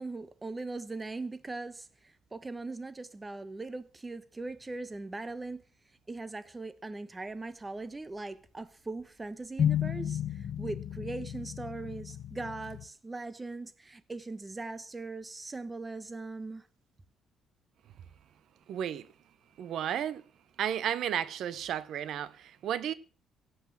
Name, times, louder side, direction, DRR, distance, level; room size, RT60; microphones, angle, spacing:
voice 1, 0.0-1.8 2.3-5.6 6.1-10.2 10.6-16.6, right 3 dB, 15° right, 1.0 m, -40 dB
sound 1, 9.6-12.9, left 9 dB, 50° left, 1.0 m, -33 dB
voice 2, 18.7-19.1 19.6-20.2 20.6-22.9, right 9 dB, 70° right, 0.8 m, -33 dB
16.0 x 8.1 x 7.3 m
cardioid pair, 130°, 0 cm